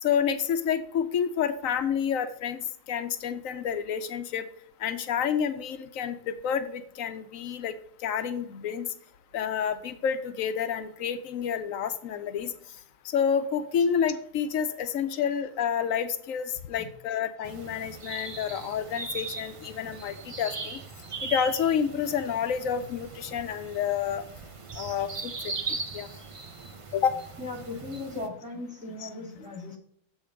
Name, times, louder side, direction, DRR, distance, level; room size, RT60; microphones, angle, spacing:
voice 1, 0.0-4.4 4.8-7.7 8.0-8.9 9.3-12.5 13.0-20.8 21.2-24.2 24.8-25.5 25.9-26.1 26.9-27.2 29.0-29.1, left 7 dB, 90° left, 10 dB, 1.1 m, -29 dB
sound 1, 17.4-28.3, right 4 dB, 35° right, 0.6 m, -39 dB
voice 2, 27.4-29.8, left 2 dB, 5° right, -3 dB, 2.2 m, -37 dB
7.4 x 5.1 x 5.1 m, 0.65 s
omnidirectional pair, 1.4 m